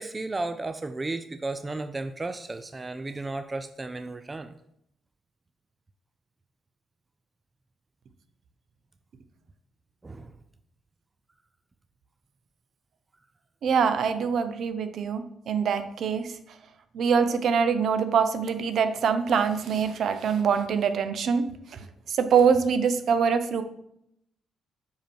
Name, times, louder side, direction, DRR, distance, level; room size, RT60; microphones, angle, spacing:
voice 1, 0.0-4.5 10.0-10.3, right 2 dB, 25° right, 10 dB, 0.4 m, -34 dB
voice 2, 13.6-16.3 16.9-21.4 22.1-23.6, right 6 dB, 65° right, 10 dB, 0.7 m, -24 dB
5.1 x 5.0 x 4.5 m, 0.75 s
cardioid pair, 90°, 0 cm